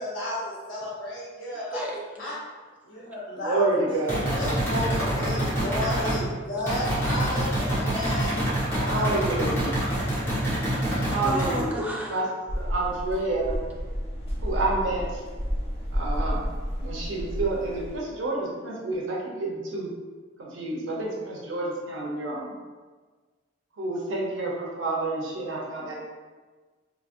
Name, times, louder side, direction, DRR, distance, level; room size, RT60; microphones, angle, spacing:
voice 1, 0.0-1.8 2.2-2.3 2.8-4.0 4.3-8.3 8.8-9.5, left 1 dB, 90° left, -8 dB, 1.1 m, -33 dB
voice 2, 1.7-2.3 5.4-5.6 11.2-12.1, equal, 10° right, -3 dB, 0.6 m, -34 dB
voice 3, 3.3-4.3 8.8-9.8 11.1-12.2 12.5-13.6 14.4-15.2 15.9-16.4 16.8-19.9 20.4-22.5 23.8-25.9, right 2 dB, 85° right, -3 dB, 0.8 m, -29 dB
sound 1, 4.1-6.2 6.7-11.6, right 1 dB, 15° left, 1.3 m, -26 dB
sound 2, 12.5-18.0, equal, 35° left, 0.9 m, -31 dB
4.0 x 3.0 x 2.5 m, 1.4 s
head